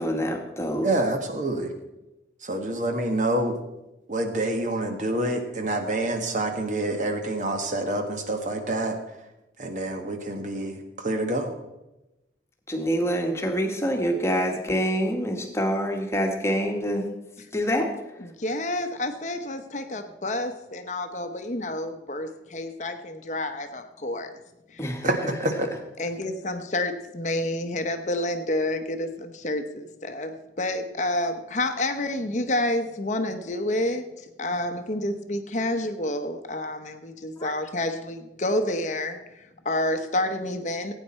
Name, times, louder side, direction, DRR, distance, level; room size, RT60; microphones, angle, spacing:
voice 1, 0.0-0.9 12.7-17.1 17.5-17.9 24.8-25.1 37.4-37.5, equal, 15° left, 3 dB, 1.4 m, -26 dB
voice 2, 0.8-1.7 2.4-3.5 4.1-8.9 9.6-11.5 25.0-25.7, right 1 dB, 45° right, 5 dB, 1.5 m, -27 dB
voice 3, 18.2-24.3 24.7-25.0 26.0-34.1 34.4-40.9, left 1 dB, 40° left, 7 dB, 0.8 m, -29 dB
16.5 x 9.1 x 4.3 m, 0.97 s
head